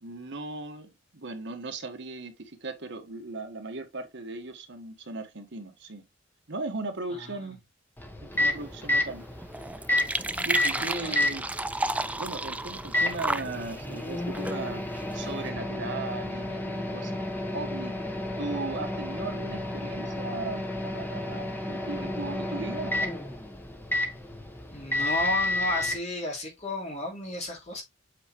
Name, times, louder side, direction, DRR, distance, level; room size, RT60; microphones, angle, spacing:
voice 1, 0.0-6.0 6.5-7.6 8.2-9.3 10.4-11.5 12.2-14.8 15.1-23.0, right 3 dB, 65° right, 1.3 m, -37 dB
Microwave oven, 8.0-26.0, left 1 dB, 10° left, 1.3 m, -31 dB
sound 1, 8.3-15.5, right 2 dB, 5° right, 0.4 m, -34 dB
voice 2, 10.7-11.3 24.7-27.8, left 1 dB, 35° left, 3.3 m, -33 dB
8.2 x 4.6 x 2.9 m
head